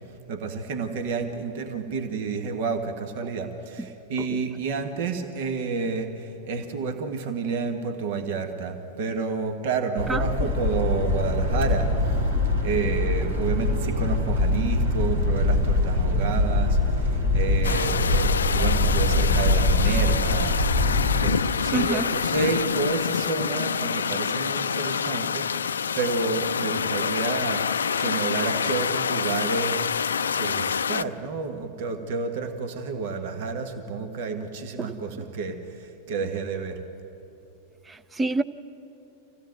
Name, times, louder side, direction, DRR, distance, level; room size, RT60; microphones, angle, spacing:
voice 1, 0.3-12.2 12.6-16.8 17.3-20.6 21.2-27.6 28.0-29.8 30.4-35.6 36.1-36.8, right 4 dB, 50° right, 7 dB, 1.7 m, -30 dB
sound 1, 10.0-21.3, left 2 dB, 70° right, 3.0 m, -23 dB
voice 2, 10.1-10.5 13.2-13.3 21.7-22.1 34.8-35.3 37.9-38.4, right 2 dB, 15° right, 14 dB, 0.7 m, -29 dB
sound 2, 17.6-31.0, left 7 dB, 70° left, 0.4 m, -27 dB
26.0 x 16.5 x 9.3 m, 2.9 s
figure-of-eight pair, 90°, 0 cm